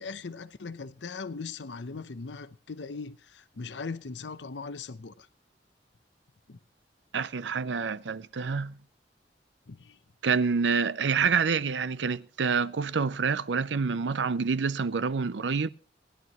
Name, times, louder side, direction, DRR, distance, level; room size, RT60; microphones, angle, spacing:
voice 1, 0.0-5.3 6.5-6.6 9.7-10.0, left 4 dB, 80° left, 0.7 m, -39 dB
voice 2, 7.1-8.8 10.2-15.7, right 5 dB, 90° right, 0.6 m, -27 dB
19.0 x 11.5 x 3.0 m
head